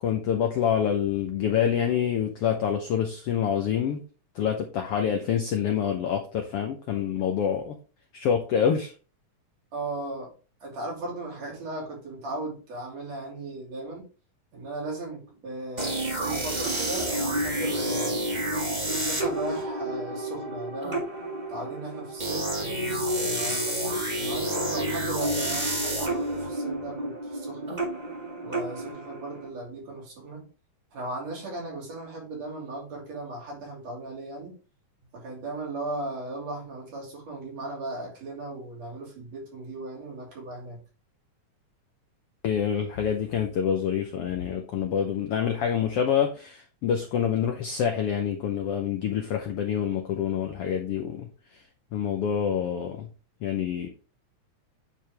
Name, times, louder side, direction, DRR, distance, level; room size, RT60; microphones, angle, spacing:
voice 1, 0.0-4.0 4.4-7.8 8.1-8.9 42.4-51.3 51.9-53.1 53.4-53.9, left 8 dB, 90° left, 1.2 m, -26 dB
voice 2, 9.7-10.3 10.6-14.0 14.5-18.2 18.9-21.1 21.5-22.6 23.2-27.9 28.4-30.5 30.9-34.6 35.1-40.8, right 2 dB, 55° right, 4.1 m, -37 dB
sound 1, 15.8-29.5, right 1 dB, 25° right, 1.0 m, -30 dB
9.2 x 4.9 x 3.4 m
omnidirectional pair, 3.7 m